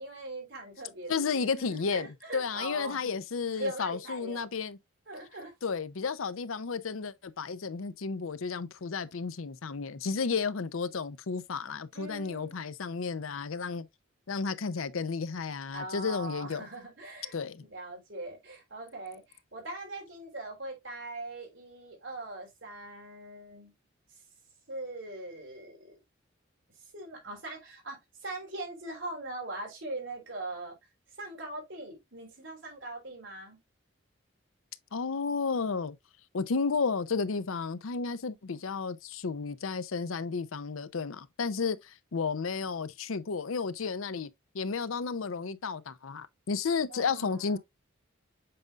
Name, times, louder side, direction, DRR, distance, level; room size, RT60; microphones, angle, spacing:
voice 1, 0.0-3.1 3.5-4.5 5.1-5.5 11.9-12.6 15.7-23.7 24.7-25.9 26.9-30.8 31.2-33.6 46.9-47.6, right 2 dB, 65° right, 3.6 m, -41 dB
voice 2, 1.1-4.8 5.6-13.9 14.3-16.7 17.3-17.6 34.9-36.0 36.3-44.3 44.5-47.6, left 5 dB, 90° left, 0.6 m, -32 dB
7.7 x 5.2 x 2.4 m
head